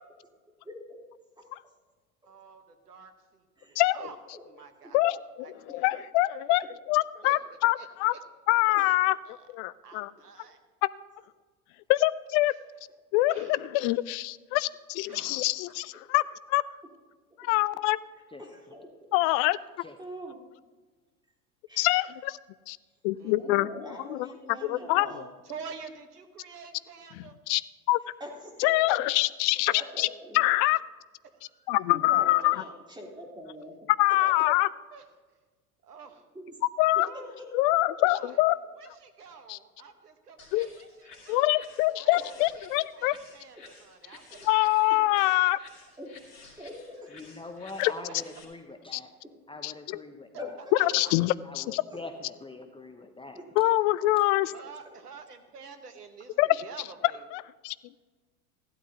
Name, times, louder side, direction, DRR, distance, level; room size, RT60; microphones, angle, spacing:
voice 1, 0.6-1.0 1.4-1.5 3.6-3.8 4.3-4.4 8.7-8.8 17.4-17.5 18.4-19.1 20.0-20.4 21.7-22.0 23.3-25.2 28.2-29.0 29.7-30.4 31.9-33.8 36.3-36.5 37.0-37.1 37.4-37.5 42.1-42.2 43.6-43.7 44.3-44.5 45.1-45.2 46.0-46.2 46.6-47.1 50.4-50.9 51.9-52.0 53.3-53.4, equal, 10° right, -2 dB, 3.6 m, -43 dB
voice 2, 2.2-4.1 4.4-5.0 5.4-5.9 7.2-7.4 7.7-8.2 8.8-9.0 9.2-9.5 9.8-10.6 13.3-13.6 15.1-16.0 23.2-23.4 25.4-27.4 31.2-31.8 34.2-34.3 34.9-35.0 35.8-36.2 37.0-37.4 38.1-38.4 38.8-41.5 41.9-42.4 42.8-44.5 44.8-45.4 47.4-47.5 47.8-47.9 50.7-51.1 54.5-56.3 56.6-57.3, right 5 dB, 85° right, 7 dB, 1.4 m, -48 dB
voice 3, 4.9-8.1 8.5-9.1 9.5-10.1 11.9-12.6 13.1-16.2 16.5-16.6 17.4-18.0 19.1-19.6 21.8-22.4 22.7-22.8 23.0-23.7 24.1-24.2 24.6-25.1 27.5-27.6 27.9-28.0 28.6-30.1 30.3-30.8 31.7-32.6 34.0-34.7 36.8-37.1 37.5-38.6 39.5-39.6 40.5-40.7 41.3-43.1 44.4-45.6 47.8-47.9 48.9-49.0 49.6-50.0 50.8-51.8 53.6-54.5 56.4-56.6 57.3-57.7, left 18 dB, 50° left, 18 dB, 0.5 m, -25 dB
sound 1, 40.4-48.4, left 4 dB, 80° left, 2.9 m, -53 dB
voice 4, 47.1-49.1 49.5-50.6 51.4-53.4, left 2 dB, 10° left, 6 dB, 0.9 m, -43 dB
16.0 x 12.0 x 2.9 m, 1.3 s
hypercardioid pair, 80°, 45 cm